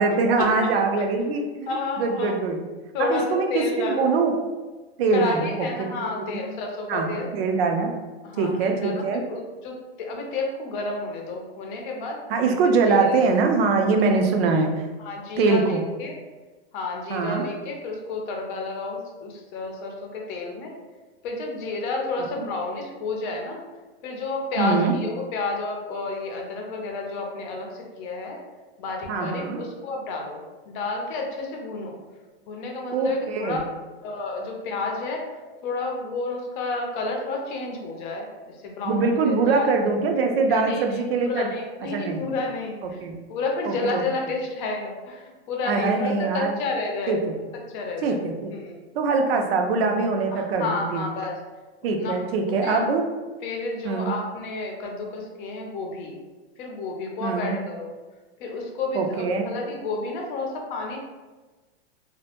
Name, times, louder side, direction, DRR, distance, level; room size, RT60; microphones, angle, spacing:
voice 1, 0.0-2.6 3.0-4.3 5.0-6.4 6.9-7.9 8.4-9.2 12.3-14.8 15.4-15.8 17.1-17.5 22.3-22.5 24.6-25.0 29.1-29.6 32.9-33.6 38.8-41.5 41.8-42.3 42.8-43.1 43.7-44.0 45.6-46.6 47.1-47.4 48.0-48.5 48.9-51.1 51.8-53.1 53.8-54.1 57.2-57.6 58.9-59.5, right 4 dB, 65° right, 4 dB, 0.5 m, -23 dB
voice 2, 1.7-2.3 2.9-4.1 5.1-7.3 8.2-12.2 12.9-13.1 15.0-16.2 16.7-20.7 21.2-23.6 24.0-28.4 28.8-30.4 30.7-32.0 32.5-33.6 34.0-35.2 35.6-39.7 40.5-40.8 41.2-43.0 43.3-47.2 47.7-48.2 48.5-48.8 50.3-51.4 51.8-52.8 53.4-56.1 56.6-57.9 58.4-61.0, left 3 dB, 50° left, 1 dB, 0.6 m, -31 dB
2.1 x 2.1 x 2.8 m, 1.2 s
hypercardioid pair, 130°, 32 cm